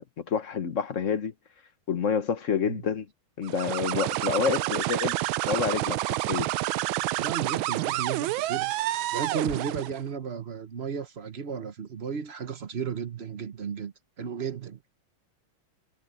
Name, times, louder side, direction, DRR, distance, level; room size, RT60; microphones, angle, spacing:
voice 1, 0.2-1.3 1.9-3.1 3.4-5.2 5.5-6.5, left 6 dB, 45° left, 1.3 m, -28 dB
sound 1, 3.4-10.0, right 16 dB, 80° right, 1.3 m, -29 dB
voice 2, 7.2-14.8, right 6 dB, 45° right, 0.9 m, -34 dB
omnidirectional pair, 2.2 m